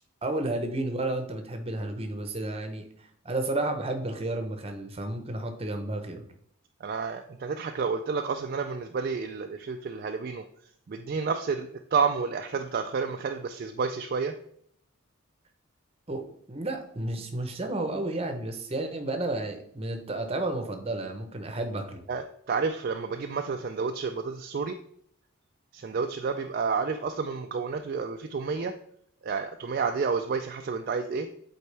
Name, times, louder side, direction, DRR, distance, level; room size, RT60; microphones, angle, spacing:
voice 1, 0.2-2.9 3.2-6.3 16.1-16.2 16.5-22.0, right 2 dB, 25° right, 6 dB, 0.7 m, -32 dB
voice 2, 6.8-10.4 10.9-14.4 22.1-24.8 25.7-28.7 29.2-31.3, right 5 dB, 45° right, 5 dB, 0.3 m, -30 dB
8.2 x 4.3 x 3.3 m, 0.66 s
head